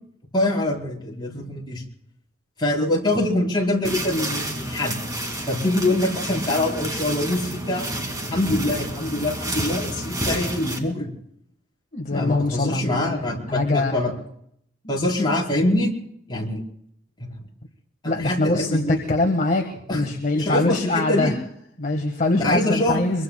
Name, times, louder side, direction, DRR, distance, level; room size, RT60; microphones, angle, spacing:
voice 1, 0.3-1.8 2.6-5.0 5.5-7.9 8.3-11.1 12.1-14.1 14.9-15.9 16.3-16.6 17.2-17.3 18.0-19.1 19.9-20.1 20.3-21.4 22.4-23.0, left 1 dB, 25° left, -2 dB, 5.1 m, -24 dB
sound 1, 3.8-10.8, right 1 dB, 20° right, 2.5 m, -29 dB
voice 2, 11.9-14.0 14.8-15.0 18.0-19.7 19.9-21.3 21.8-23.2, left 2 dB, 40° left, 3 dB, 1.6 m, -23 dB
25.0 x 24.0 x 2.3 m, 0.69 s
head